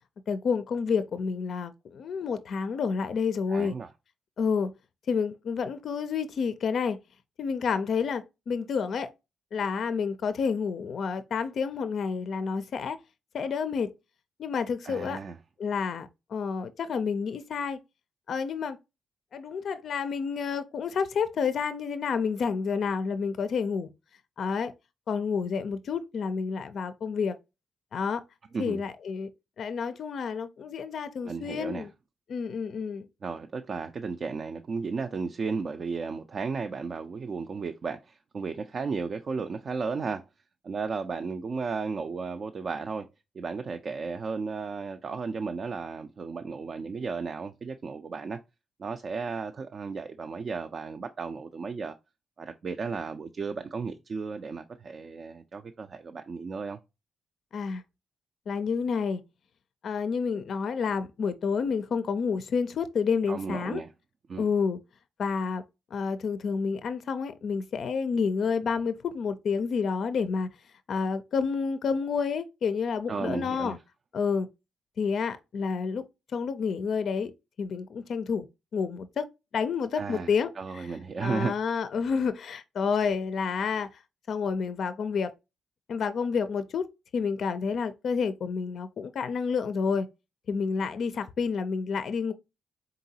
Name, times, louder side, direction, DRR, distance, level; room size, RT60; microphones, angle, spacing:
voice 1, 0.3-3.8 4.4-4.7 5.1-7.0 7.4-9.1 9.5-13.0 13.3-13.9 14.4-15.2 15.6-17.8 18.3-18.8 19.3-23.9 24.4-24.7 25.1-27.4 27.9-28.2 28.6-29.3 29.6-31.9 32.3-33.1 57.5-57.8 58.5-59.2 59.8-63.8 64.4-64.8 65.2-65.6 65.9-70.5 70.9-73.8 74.1-74.5 75.0-76.0 76.3-77.3 77.6-78.5 78.7-79.3 79.5-80.9 81.2-84.0 84.3-85.3 85.9-86.9 87.1-90.1 90.5-92.3, left 5 dB, 65° left, 0.4 m, -29 dB
voice 2, 3.5-3.9 14.8-15.4 28.5-28.8 31.2-31.9 33.2-40.2 40.6-43.1 43.3-48.4 48.8-51.9 52.4-56.8 63.3-63.9 64.3-64.5 73.1-73.7 80.0-80.3 80.6-81.5, right 4 dB, 50° right, 0.4 m, -34 dB
3.9 x 3.8 x 2.7 m
cardioid pair, 70°, 0 cm